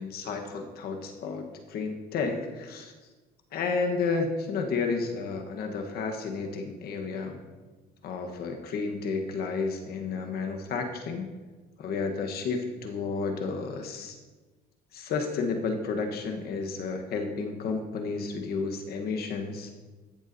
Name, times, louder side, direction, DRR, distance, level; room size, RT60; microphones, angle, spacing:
voice 1, 0.0-2.9 3.5-7.4 8.0-11.3 11.8-14.2 14.9-19.7, left 4 dB, 65° left, 4 dB, 1.2 m, -31 dB
13.5 x 7.1 x 2.7 m, 1.3 s
cardioid pair, 110°, 17 cm